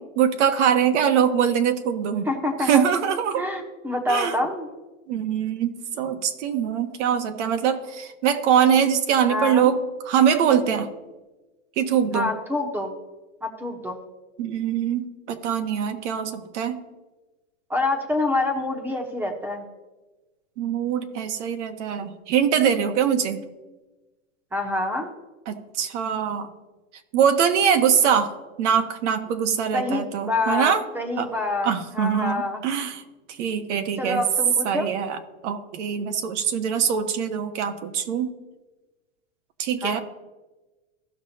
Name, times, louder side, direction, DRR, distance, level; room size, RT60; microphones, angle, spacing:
voice 1, 0.2-2.3 2.6-3.4 4.1-4.4 5.1-10.9 11.8-12.3 14.4-16.8 20.6-23.4 25.5-26.5 27.1-30.8 31.2-31.3 31.6-33.0 33.3-34.2 34.6-35.2 35.4-38.3 39.6-40.0, right 8 dB, 65° right, 7 dB, 1.3 m, -23 dB
voice 2, 2.2-2.8 3.4-4.7 9.3-9.7 12.1-12.9 13.4-14.0 17.7-19.6 24.5-25.1 29.7-32.6 34.0-34.9 39.8-40.0, left 2 dB, 5° right, 4 dB, 1.0 m, -26 dB
16.0 x 6.1 x 2.8 m, 1.2 s
supercardioid pair, 155°, 39 cm